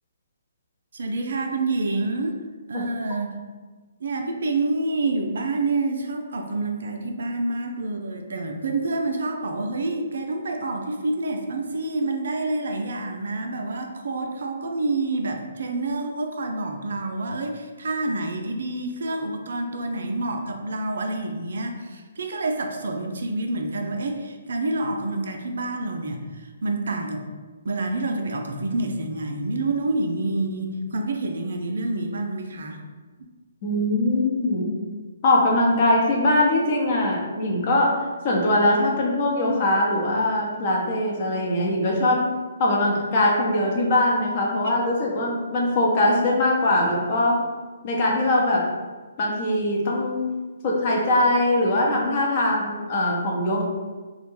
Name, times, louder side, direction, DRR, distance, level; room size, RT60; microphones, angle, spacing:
voice 1, 0.9-2.4 2.7-3.4 4.0-27.2 27.6-32.8, right 2 dB, 65° right, 3 dB, 0.4 m, -28 dB
voice 2, 33.6-34.7 35.2-37.9 38.2-42.2 42.6-47.4 47.8-48.7 49.2-50.2 50.6-53.6, left 1 dB, 40° left, -2 dB, 0.6 m, -21 dB
2.4 x 2.1 x 3.1 m, 1.4 s
figure-of-eight pair, 135°, 0 cm